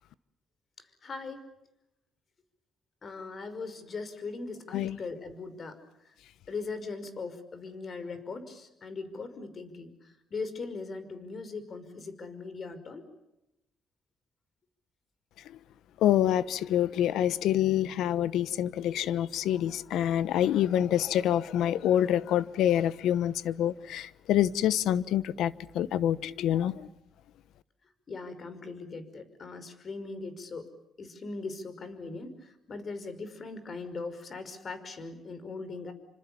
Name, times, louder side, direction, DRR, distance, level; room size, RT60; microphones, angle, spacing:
voice 1, 1.0-1.4 3.0-5.8 6.5-9.9 10.3-13.0 26.6-26.7 28.1-30.7 31.0-35.9, left 4 dB, 45° left, 5.6 m, -39 dB
voice 2, 16.0-26.7, left 11 dB, 85° left, 1.1 m, -26 dB
28.5 x 26.0 x 7.1 m
cardioid pair, 90°, 0 cm